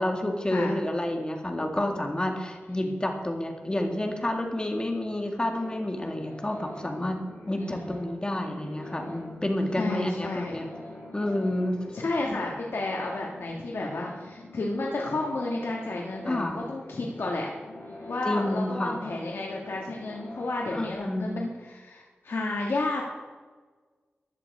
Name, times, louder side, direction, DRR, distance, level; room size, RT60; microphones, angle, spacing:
voice 1, 0.0-7.2 7.5-10.7 11.1-11.9 12.3-12.4 16.3-16.6 18.2-19.0 20.7-21.4, left 1 dB, 20° left, 3 dB, 2.1 m, -29 dB
sound 1, 5.5-20.5, left 2 dB, 55° left, 4.9 m, -45 dB
voice 2, 9.8-10.6 11.9-17.5 18.1-23.1, left 2 dB, 80° left, -2 dB, 1.7 m, -31 dB
15.0 x 10.5 x 4.8 m, 1.4 s
wide cardioid pair, 85°, 4 cm